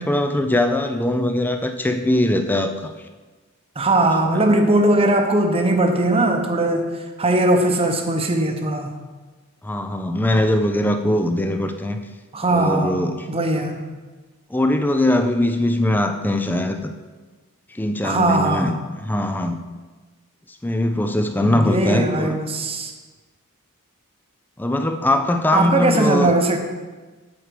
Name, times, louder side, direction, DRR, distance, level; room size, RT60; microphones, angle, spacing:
voice 1, 0.0-2.9 4.2-4.6 9.6-12.0 12.5-13.3 14.5-16.9 17.7-19.6 20.5-22.4 24.6-26.3, left 1 dB, 10° left, 6 dB, 0.4 m, -21 dB
voice 2, 3.8-6.9 7.2-8.9 12.3-13.0 13.3-13.8 18.0-18.7 21.5-22.9 25.5-26.6, right 2 dB, 25° right, 4 dB, 0.9 m, -19 dB
7.8 x 4.9 x 6.7 m, 1.3 s
head